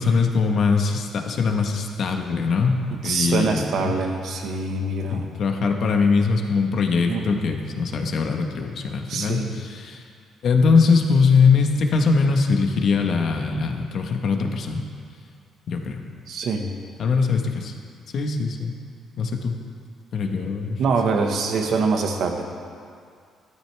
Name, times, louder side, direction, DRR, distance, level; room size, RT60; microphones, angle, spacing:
voice 1, 0.0-3.9 5.1-10.0 10.4-14.8 15.7-16.0 17.0-17.7 18.1-18.7 19.2-19.5 20.1-20.8, left 4 dB, 55° left, 4 dB, 1.2 m, -21 dB
voice 2, 3.0-5.3 7.1-7.4 9.1-9.6 16.3-16.7 20.8-22.5, right 4 dB, 60° right, 3 dB, 1.4 m, -24 dB
15.5 x 12.5 x 3.4 m, 2.2 s
cardioid pair, 135°, 0 cm